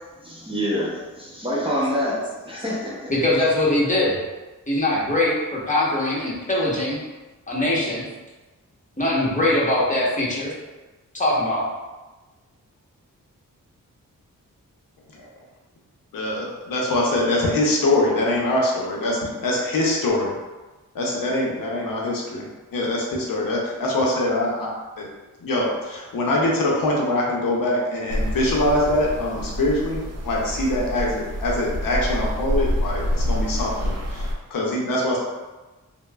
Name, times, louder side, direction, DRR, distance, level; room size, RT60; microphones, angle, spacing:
voice 1, 0.2-3.1, equal, 15° right, -6 dB, 0.7 m, -26 dB
voice 2, 3.1-4.2 4.7-7.0 7.5-8.0 9.0-10.5 11.1-11.7, left 1 dB, 25° left, -6 dB, 0.9 m, -22 dB
voice 3, 16.1-20.4 20.9-25.0 25.4-35.2, left 1 dB, 85° left, -3 dB, 0.6 m, -23 dB
sound 1, 28.1-34.4, equal, 50° right, 0.4 m, -27 dB
3.0 x 2.0 x 2.2 m, 1.2 s
cardioid pair, 60°, 33 cm